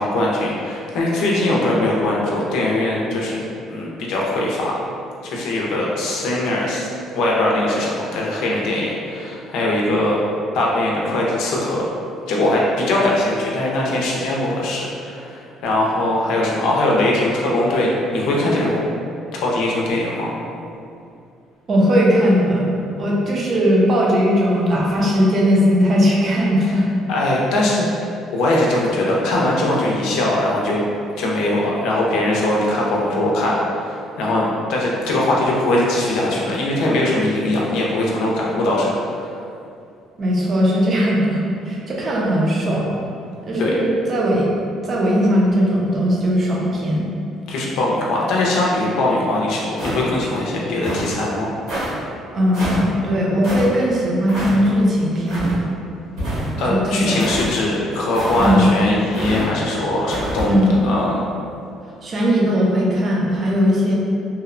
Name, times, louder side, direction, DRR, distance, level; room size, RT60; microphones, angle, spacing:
voice 1, 0.0-3.4 3.7-4.8 5.2-6.9 7.1-10.2 10.5-11.9 12.3-18.8 19.4-20.4 27.1-28.0 28.3-30.8 31.2-39.3 43.6-43.7 47.5-51.5 56.6-60.5 60.8-61.3, left 1 dB, 80° left, -3 dB, 0.5 m, -21 dB
voice 2, 21.7-26.9 40.2-43.0 43.4-44.5 44.8-47.1 52.3-55.6 56.7-57.2 58.4-58.7 60.4-60.9 62.0-63.9, equal, 40° right, -3 dB, 0.5 m, -18 dB
sound 1, 49.8-50.3 50.8-51.1 51.7-51.9 52.5-52.8 53.4-53.7 54.3-54.6 55.3-55.6 56.2-56.7 57.2-57.5 58.1-58.6 59.1-59.4 60.1-60.5, right 1 dB, 85° right, 1.2 m, -26 dB
2.7 x 2.0 x 2.4 m, 2.5 s
cardioid pair, 125°, 0 cm